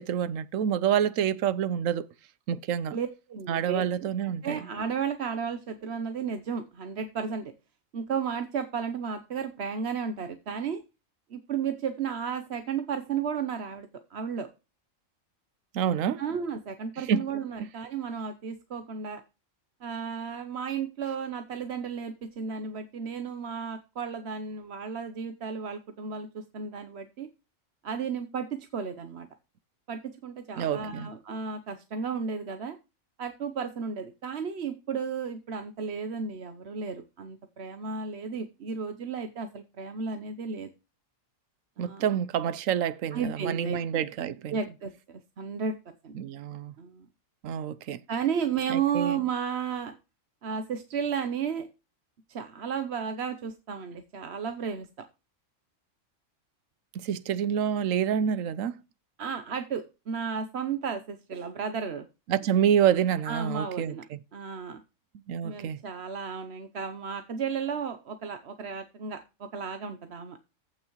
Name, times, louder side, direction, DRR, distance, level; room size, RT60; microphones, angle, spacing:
voice 1, 0.0-2.1 2.5-3.0 3.5-4.6 15.7-16.2 17.0-17.3 17.6-17.7 30.6-31.1 41.8-44.6 46.1-46.7 47.4-48.0 48.7-49.2 56.9-58.8 62.3-64.2 65.3-65.8, right 9 dB, 80° right, 1.1 m, -27 dB
voice 2, 2.9-7.5 7.9-10.8 11.3-14.5 16.2-19.2 19.8-27.3 27.8-29.3 29.9-32.8 33.2-40.7 41.8-42.0 43.1-44.0 44.5-45.8 46.0-46.1 46.8-47.1 48.1-50.0 50.4-51.7 52.3-54.9 59.2-62.1 63.2-64.0 64.3-64.8 65.4-70.4, right 6 dB, 55° right, 1.1 m, -33 dB
15.0 x 6.0 x 3.1 m
omnidirectional pair, 1.4 m